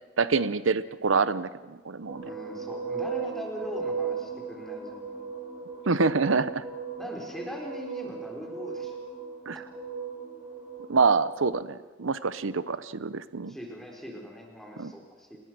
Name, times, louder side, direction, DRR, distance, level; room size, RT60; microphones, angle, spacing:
voice 1, 0.2-2.3 5.9-6.6 9.5-9.6 10.9-13.5 14.8-14.9, right 4 dB, 90° right, 15 dB, 0.8 m, -26 dB
sound 1, 2.1-11.4, right 5 dB, 15° right, 7.2 m, -37 dB
voice 2, 2.2-5.3 7.0-8.9 13.5-15.4, equal, ahead, 0 dB, 4.2 m, -40 dB
29.5 x 20.5 x 6.1 m, 1.3 s
head